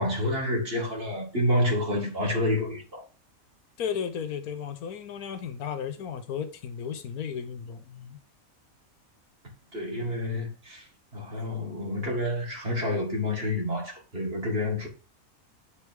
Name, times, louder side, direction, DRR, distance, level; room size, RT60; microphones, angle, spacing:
voice 1, 0.0-3.0 9.7-10.9 11.1-14.9, left 1 dB, 40° right, 2.3 m, -28 dB
voice 2, 3.8-8.2, left 7 dB, 85° left, 1.3 m, -34 dB
8.4 x 3.4 x 4.6 m
omnidirectional pair, 1.5 m